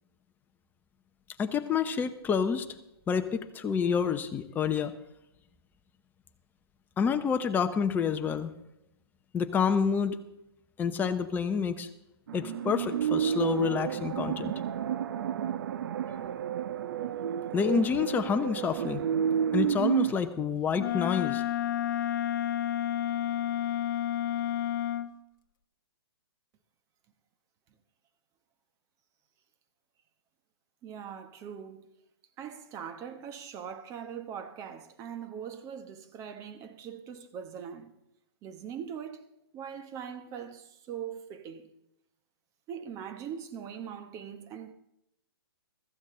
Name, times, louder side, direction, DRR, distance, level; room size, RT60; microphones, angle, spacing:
voice 1, 1.4-2.7 3.1-4.9 7.0-8.5 9.3-10.2 10.8-11.9 12.3-14.5 17.5-19.0 19.5-21.4, left 6 dB, 15° left, 0.8 m, -28 dB
sound 1, 12.3-20.1, right 9 dB, 55° right, 0.6 m, -30 dB
Wind instrument woodwind instrument, 20.7-25.1, left 11 dB, 50° left, 0.7 m, -30 dB
voice 2, 30.8-31.9 32.4-37.9 38.4-41.7 42.7-44.7, right 8 dB, 25° right, 1.1 m, -41 dB
15.0 x 14.0 x 3.8 m
hypercardioid pair, 135°, 13 cm